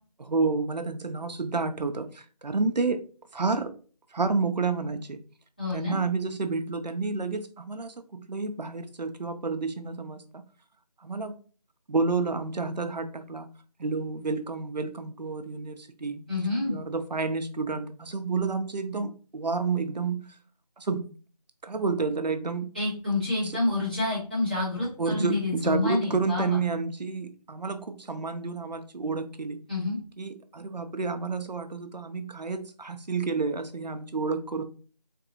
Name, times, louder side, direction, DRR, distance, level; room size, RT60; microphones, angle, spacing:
voice 1, 0.2-3.0 3.3-3.7 4.1-5.2 5.7-10.4 11.0-11.3 11.9-13.5 13.8-16.2 16.6-20.3 20.8-21.1 21.6-22.7 23.4-23.6 25.0-29.6 30.2-34.6, right 4 dB, 80° right, 0.6 m, -30 dB
voice 2, 5.6-6.0 16.3-16.8 22.7-26.6 29.7-30.0, left 2 dB, 15° left, 0.9 m, -28 dB
3.9 x 2.6 x 2.8 m
figure-of-eight pair, 175°, 21 cm